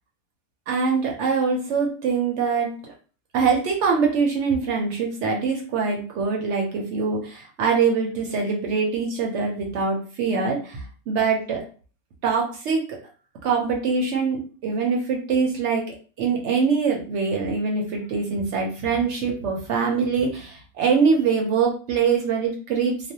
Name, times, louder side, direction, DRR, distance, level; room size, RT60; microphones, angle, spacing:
voice 1, 0.7-2.9 3.3-11.6 12.2-13.0 13.4-23.1, right 5 dB, 65° right, 0 dB, 0.7 m, -23 dB
2.4 x 2.1 x 2.7 m, 0.39 s
omnidirectional pair, 1.5 m